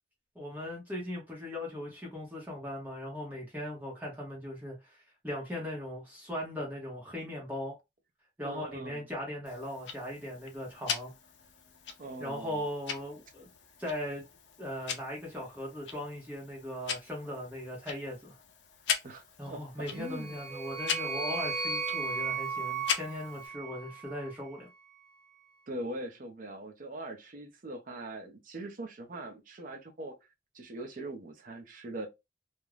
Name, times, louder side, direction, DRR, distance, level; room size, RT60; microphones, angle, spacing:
voice 1, 0.3-7.8 8.4-11.1 12.2-13.5 13.8-14.2 14.6-18.4 19.4-24.7, left 1 dB, 10° right, 0.8 m, -39 dB
voice 2, 8.4-9.0 12.0-12.6 19.0-20.4 25.7-30.2 30.5-32.1, right 2 dB, 45° right, 0.6 m, -41 dB
Tick-tock, 9.5-23.5, left 7 dB, 65° left, 0.5 m, -40 dB
sound 1, 20.0-24.3, right 5 dB, 90° right, 0.6 m, -36 dB
2.4 x 2.1 x 3.1 m
head